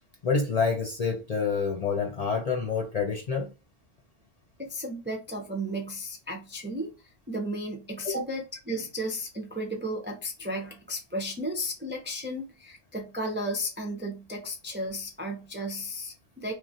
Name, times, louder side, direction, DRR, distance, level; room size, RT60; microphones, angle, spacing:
voice 1, 0.2-3.5 8.0-8.2, left 5 dB, 50° left, 0.5 m, -27 dB
voice 2, 4.6-6.9 7.3-16.5, equal, 15° right, 0.4 m, -34 dB
3.1 x 2.3 x 2.6 m
omnidirectional pair, 1.1 m